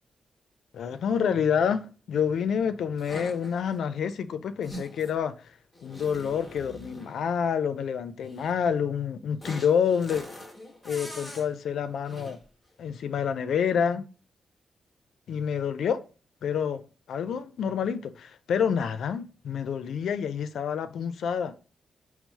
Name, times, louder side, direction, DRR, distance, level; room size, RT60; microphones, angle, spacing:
voice 1, 0.7-5.3 5.8-10.3 10.8-12.4 12.8-14.0 15.3-16.0 16.4-16.8 17.1-21.5, left 7 dB, 80° left, 0.4 m, -28 dB
sound 1, 3.0-3.8 4.6-5.2 5.7-7.2 8.2-8.5 9.4-11.5 12.0-12.4, equal, 5° left, 1.3 m, -43 dB
4.5 x 2.0 x 4.0 m
cardioid pair, 85°, 0 cm